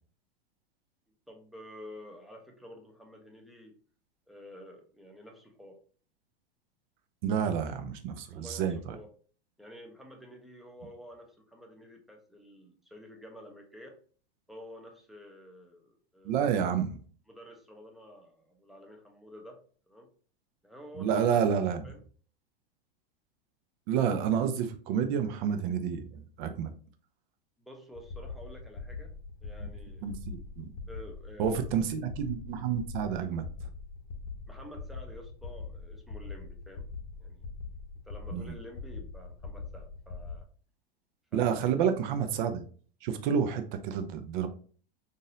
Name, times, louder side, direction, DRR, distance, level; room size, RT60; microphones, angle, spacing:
voice 1, 1.3-3.8 4.3-5.8 8.3-9.1 9.6-14.0 14.5-16.4 17.3-20.1 20.6-21.2 21.8-22.0 27.6-29.1 29.4-30.2 30.9-31.7 34.5-36.9 37.2-37.5 38.0-40.5 41.3-41.7, equal, ahead, 2 dB, 0.5 m, -50 dB
voice 2, 7.2-9.0 16.2-17.0 21.0-21.9 23.9-26.7 29.6-29.7 30.0-30.7 31.4-33.5 38.3-38.5 41.3-42.6 43.0-44.5, right 8 dB, 50° right, 8 dB, 0.6 m, -29 dB
sound 1, 27.9-40.4, left 4 dB, 50° left, 0.7 m, -42 dB
3.9 x 2.6 x 2.6 m, 0.43 s
hypercardioid pair, 120°, 31 cm